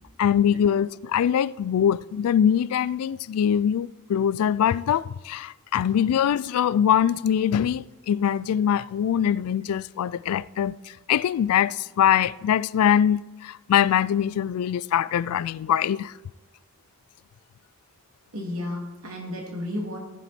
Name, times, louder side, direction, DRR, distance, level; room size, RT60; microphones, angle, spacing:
voice 1, 0.2-10.8 11.1-16.1, left 9 dB, 90° left, 0.3 m, -23 dB
voice 2, 18.3-20.0, left 1 dB, 80° right, 2.6 m, -33 dB
14.5 x 7.2 x 4.2 m
head